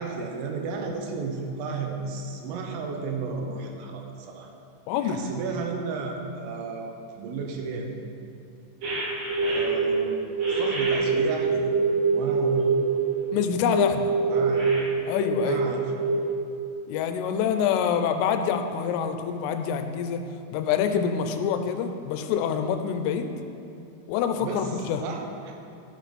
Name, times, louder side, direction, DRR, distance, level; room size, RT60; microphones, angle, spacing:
voice 1, 0.0-4.5 5.0-8.0 9.4-10.2 10.5-11.7 12.1-12.7 14.3-14.7 15.4-15.8 24.4-24.7 25.0-25.5, right 4 dB, 85° right, 2 dB, 3.7 m, -33 dB
voice 2, 4.9-5.2 13.3-14.1 15.1-15.6 16.9-20.2 20.5-23.3 24.1-25.0, left 7 dB, 85° left, 7 dB, 3.2 m, -26 dB
sound 1, 8.8-10.0 10.4-13.1 13.7-15.7 16.0-16.2, right 4 dB, 50° right, 3.4 m, -24 dB
13.5 x 8.1 x 4.2 m, 2.5 s
omnidirectional pair, 5.8 m